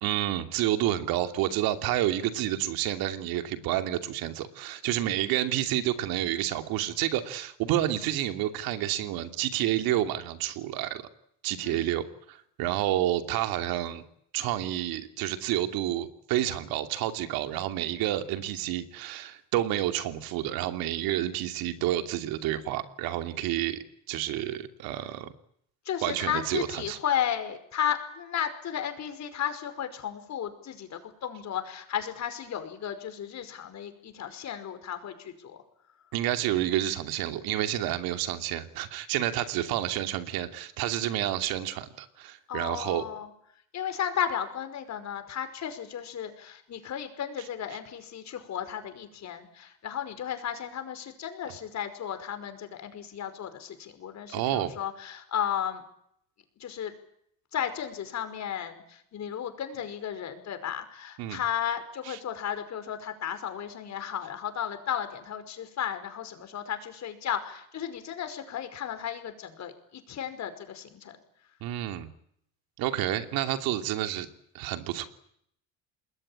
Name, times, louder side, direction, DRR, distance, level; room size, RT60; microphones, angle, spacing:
voice 1, 0.0-11.0 11.4-14.0 14.3-25.3 26.0-27.0 36.1-43.0 54.3-54.7 61.2-61.4 62.0-62.2 71.6-72.1 72.8-74.3 74.5-75.0, right 13 dB, 75° right, 8 dB, 2.8 m, -29 dB
voice 2, 25.9-35.6 42.5-43.3 43.7-55.8 56.6-56.9 57.5-71.2, left 9 dB, 50° left, 9 dB, 5.4 m, -34 dB
27.5 x 21.0 x 8.9 m, 0.71 s
cardioid pair, 110°, 35 cm